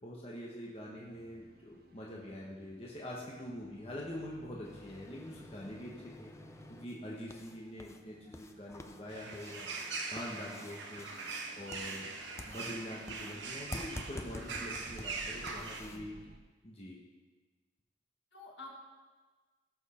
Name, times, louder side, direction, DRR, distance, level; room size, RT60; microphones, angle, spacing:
voice 1, 0.0-6.3 6.7-9.8 10.1-12.1 12.4-16.1 16.6-17.0, left 1 dB, 30° left, -4 dB, 1.2 m, -45 dB
sound 1, 0.9-16.4, right 1 dB, 50° right, 0.7 m, -60 dB
sound 2, 4.6-16.0, left 2 dB, 15° left, 0.4 m, -50 dB
sound 3, 9.1-15.8, right 4 dB, 70° right, 1.3 m, -42 dB
voice 2, 10.2-10.7 12.0-12.1 15.9-16.3 18.3-18.7, left 2 dB, 65° left, -2 dB, 2.1 m, -53 dB
16.5 x 6.3 x 4.4 m, 1.4 s
head